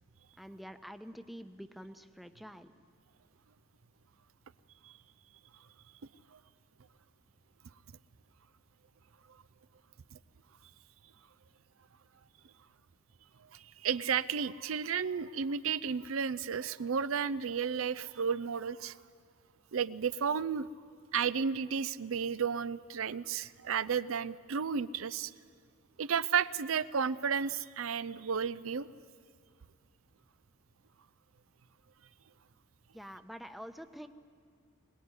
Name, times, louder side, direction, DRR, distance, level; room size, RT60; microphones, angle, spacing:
voice 1, 0.4-2.7 32.9-34.1, equal, ahead, 8 dB, 0.8 m, -47 dB
voice 2, 13.5-19.0 19.7-20.7 21.1-25.3 26.0-28.9, right 6 dB, 90° right, 15 dB, 0.6 m, -33 dB
22.5 x 19.5 x 9.7 m, 2.1 s
head